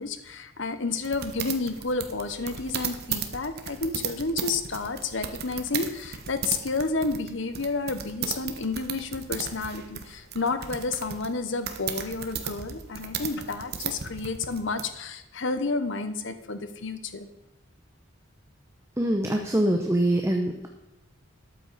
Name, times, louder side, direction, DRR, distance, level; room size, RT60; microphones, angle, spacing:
voice 1, 0.0-17.3, left 3 dB, 60° left, 10 dB, 1.0 m, -30 dB
sound 1, 1.0-14.9, right 7 dB, 50° right, 1.1 m, -35 dB
voice 2, 19.0-20.7, right 1 dB, 15° right, 3 dB, 0.8 m, -24 dB
12.5 x 8.5 x 4.1 m, 0.96 s
head